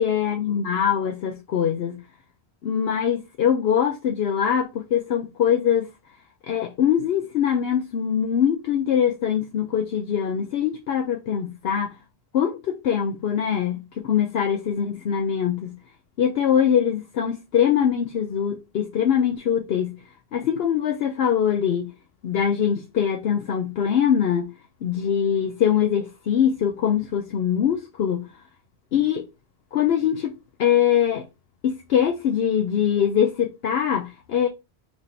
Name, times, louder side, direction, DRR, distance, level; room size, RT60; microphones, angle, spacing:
voice 1, 0.0-2.0 2.6-5.9 6.5-11.9 12.3-15.8 16.2-20.0 20.3-21.9 22.2-24.5 24.8-28.3 28.9-29.2 29.7-30.3 30.6-31.3 31.6-34.5, left 8 dB, 70° left, 0.8 m, -23 dB
5.4 x 3.0 x 2.7 m
omnidirectional pair, 1.1 m